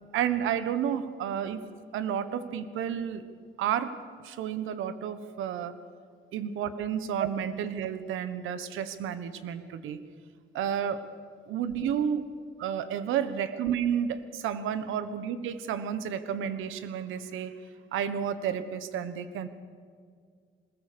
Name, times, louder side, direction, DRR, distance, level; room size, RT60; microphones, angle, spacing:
voice 1, 0.1-1.6 1.9-3.2 3.6-5.8 6.3-10.0 10.5-11.1 11.5-12.3 12.6-17.6 17.9-19.5, right 8 dB, 90° right, 12 dB, 1.3 m, -31 dB
22.0 x 20.0 x 6.9 m, 2.1 s
cardioid pair, 90°, 20 cm